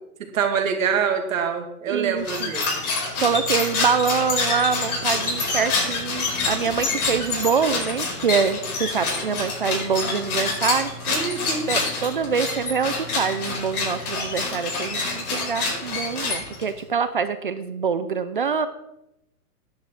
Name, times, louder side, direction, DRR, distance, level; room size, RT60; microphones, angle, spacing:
voice 1, 0.3-2.6 11.1-11.7, right 6 dB, 60° right, 5 dB, 2.3 m, -25 dB
voice 2, 1.9-2.5 3.2-10.9 11.7-18.7, right 6 dB, 35° right, 12 dB, 0.5 m, -25 dB
sound 1, 2.2-16.8, left 3 dB, 70° left, 5.0 m, -27 dB
10.5 x 6.2 x 8.2 m, 0.83 s
hypercardioid pair, 175°, 45 cm